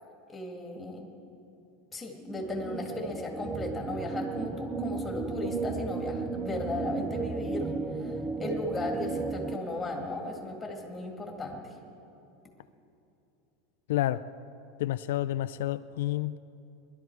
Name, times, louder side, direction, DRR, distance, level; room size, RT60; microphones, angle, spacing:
voice 1, 0.3-1.1 1.9-7.7 8.0-11.6, left 2 dB, 10° left, 2.0 m, -36 dB
sound 1, 2.2-9.6, right 4 dB, 15° right, 0.5 m, -34 dB
voice 2, 13.9-14.2 14.8-16.4, left 14 dB, 80° left, 0.3 m, -29 dB
20.5 x 12.0 x 4.6 m
supercardioid pair, 160°, 0 cm